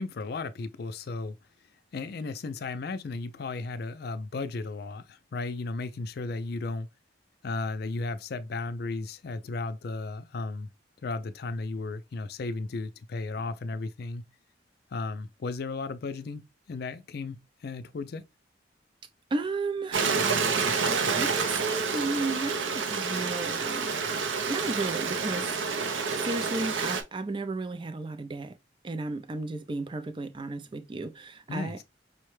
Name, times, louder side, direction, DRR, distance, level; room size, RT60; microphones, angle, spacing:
voice 1, 0.0-1.4 1.9-6.9 7.4-10.7 11.0-14.2 14.9-18.2 31.5-31.8, left 3 dB, 55° left, 0.4 m, -35 dB
voice 2, 19.3-20.2 21.2-25.6 26.1-28.6 28.8-31.8, right 3 dB, 25° right, 0.4 m, -34 dB
Stream, 19.9-27.0, right 5 dB, 90° right, 0.6 m, -28 dB
5.5 x 2.1 x 3.1 m
head